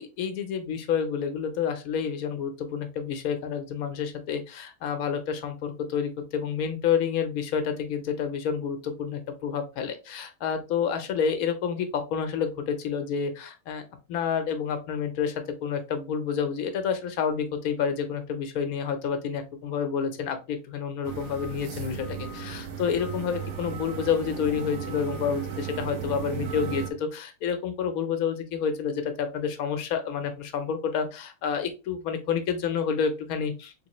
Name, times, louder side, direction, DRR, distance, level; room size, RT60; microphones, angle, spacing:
voice 1, 0.0-13.8 14.1-33.9, left 7 dB, 75° left, 7 dB, 1.1 m, -29 dB
sound 1, 21.0-26.9, right 7 dB, 70° right, 1.0 m, -35 dB
3.6 x 2.6 x 2.9 m, 0.30 s
omnidirectional pair, 1.5 m